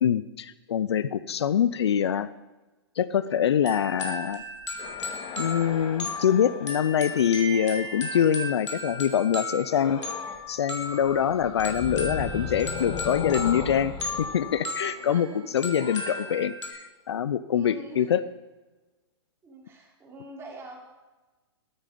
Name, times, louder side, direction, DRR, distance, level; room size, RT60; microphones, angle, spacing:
voice 1, 0.0-2.3 3.0-4.4 5.4-10.0 10.5-13.9 14.3-15.3 15.5-16.5 17.1-18.2, left 9 dB, 65° left, 16 dB, 0.7 m, -24 dB
sound 1, 3.6-16.7, left 2 dB, 85° left, 4.2 m, -36 dB
sound 2, 4.4-8.6 9.7-10.4 10.7-15.6, left 6 dB, 35° left, 2.0 m, -37 dB
voice 2, 14.8-16.4 17.5-18.1 19.4-20.8, right 2 dB, 15° right, -3 dB, 5.2 m, -44 dB
14.0 x 13.5 x 5.2 m, 1.1 s
hypercardioid pair, 120°, 15 cm